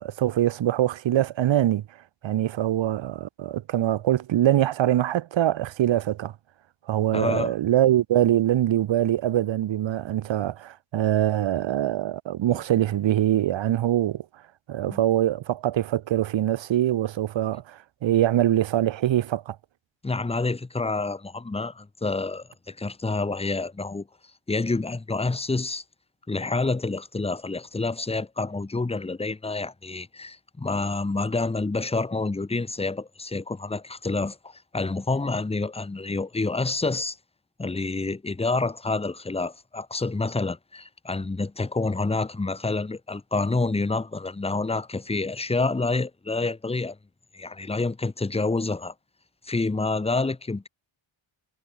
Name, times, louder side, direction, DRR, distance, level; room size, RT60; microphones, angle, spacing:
voice 1, 0.0-1.8 2.2-6.3 6.9-14.2 14.7-19.6, right 12 dB, 65° right, 1.0 m, -23 dB
voice 2, 7.1-7.5 12.5-12.6 14.9-15.0 20.0-24.1 24.5-25.8 26.3-37.2 37.6-47.0 47.3-48.9 49.4-50.7, left 3 dB, 10° left, 1.1 m, -28 dB
wide cardioid pair, 160°, 48 cm